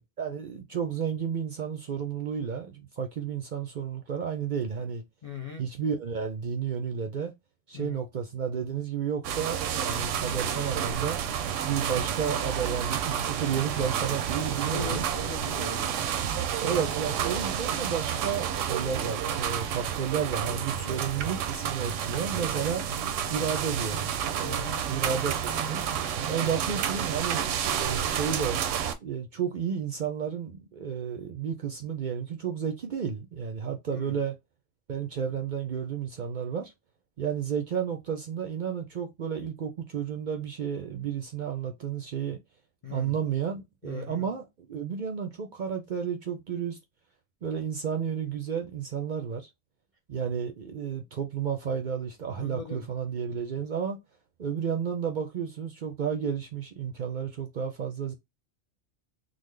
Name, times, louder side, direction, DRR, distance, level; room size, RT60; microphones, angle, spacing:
voice 1, 0.2-5.0 5.6-7.3 7.7-11.2 11.6-15.0 16.6-22.9 23.3-24.1 24.9-25.8 26.3-28.6 29.0-34.3 34.9-36.7 37.2-42.4 42.9-46.8 47.4-49.4 50.1-54.0 54.4-58.1, right 7 dB, 55° right, 0.6 m, -32 dB
voice 2, 5.2-5.7 7.7-8.0 14.7-16.1 20.7-21.0 24.4-24.9 33.9-34.2 42.8-43.2 43.8-44.3 52.4-52.9, left 4 dB, 50° left, 0.4 m, -39 dB
sound 1, 9.2-28.9, right 8 dB, 85° right, 0.9 m, -30 dB
3.9 x 2.0 x 3.2 m
omnidirectional pair, 1.2 m